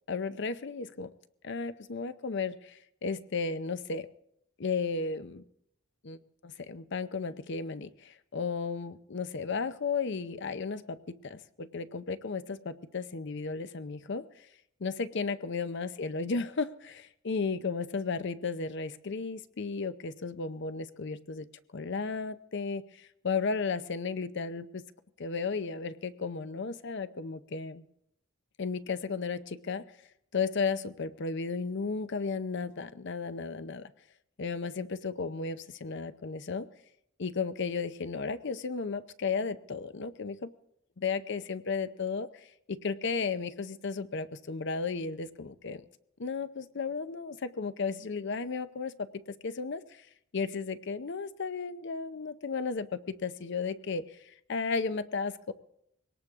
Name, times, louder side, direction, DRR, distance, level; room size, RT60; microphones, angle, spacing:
voice 1, 0.1-1.1 1.4-4.1 4.6-5.4 6.0-14.5 14.8-24.8 25.2-27.8 28.6-29.8 30.3-33.9 34.4-36.7 37.2-40.5 41.0-45.8 46.2-50.1 50.3-55.5, left 4 dB, 60° left, 13 dB, 0.6 m, -34 dB
22.0 x 18.5 x 3.6 m, 0.77 s
head